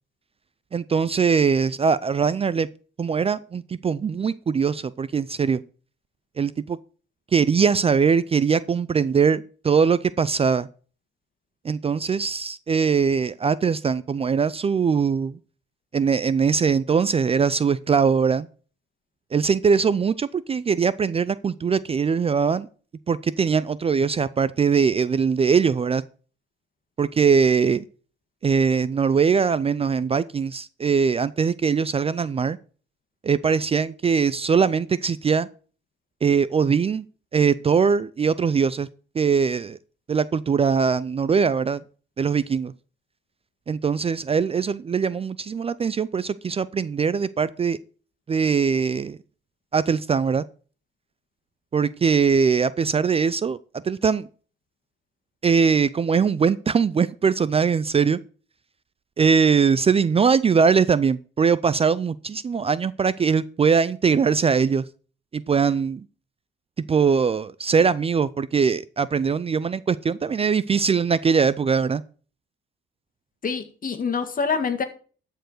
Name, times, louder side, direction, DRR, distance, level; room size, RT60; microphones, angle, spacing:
voice 1, 0.7-2.7 3.0-5.6 6.4-6.8 7.3-10.7 11.6-15.4 15.9-18.5 19.3-22.7 23.1-26.0 27.0-27.9 28.4-32.6 33.2-35.5 36.2-37.0 37.3-38.9 39.1-39.8 40.1-41.8 42.2-42.7 43.7-47.8 48.3-49.2 49.7-50.4 51.7-54.3 55.4-58.2 59.2-64.8 65.3-66.0 66.9-72.0, right 6 dB, 30° right, 0.4 m, -21 dB
voice 2, 73.4-74.8, left 5 dB, 45° left, 1.8 m, -26 dB
12.5 x 4.6 x 6.5 m
cardioid pair, 90°, 20 cm